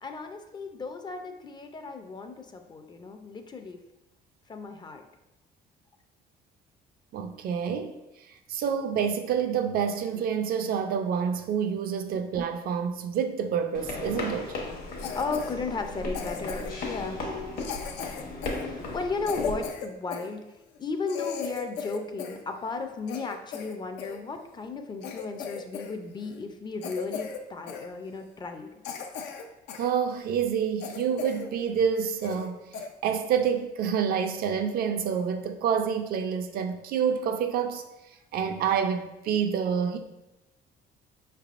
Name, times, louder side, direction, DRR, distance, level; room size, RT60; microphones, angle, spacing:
voice 1, 0.0-3.8 4.5-5.0 12.1-12.2 15.1-17.2 18.6-20.4 20.8-28.7, left 4 dB, 25° left, 0.4 m, -35 dB
voice 2, 7.1-8.0 8.3-14.5 29.8-32.7 33.0-37.8 38.3-40.0, right 7 dB, 60° right, 0.4 m, -28 dB
sound 1, 13.7-19.7, left 2 dB, 60° left, 1.0 m, -36 dB
Cough, 15.0-15.5 16.1-16.9 17.6-20.3 20.8-20.9 21.1-22.4 22.7-24.2 24.7-24.8 25.0-25.9 26.2-26.4 26.8-27.4 27.7-27.9 28.4-28.5 28.8-29.9 30.3-30.4 30.8-31.5 31.8-31.9 32.2-32.5 32.7-32.9 33.4-33.6, left 6 dB, 85° left, 0.5 m, -37 dB
5.0 x 3.3 x 2.4 m
cardioid pair, 110°, 17 cm